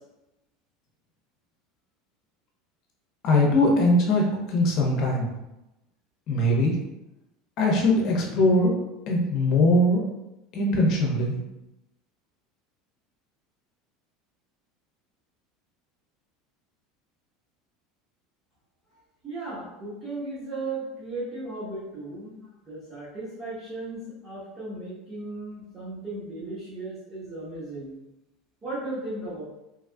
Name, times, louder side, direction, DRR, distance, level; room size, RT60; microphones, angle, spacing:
voice 1, 3.2-4.2 4.5-5.3 6.3-6.7 7.6-8.7 9.1-10.0 10.5-11.4, left 1 dB, 55° left, -1 dB, 0.8 m, -21 dB
voice 2, 19.2-28.0 28.6-29.4, right 2 dB, 25° right, -12 dB, 1.4 m, -36 dB
3.4 x 2.3 x 2.3 m, 0.92 s
supercardioid pair, 115°, 0 cm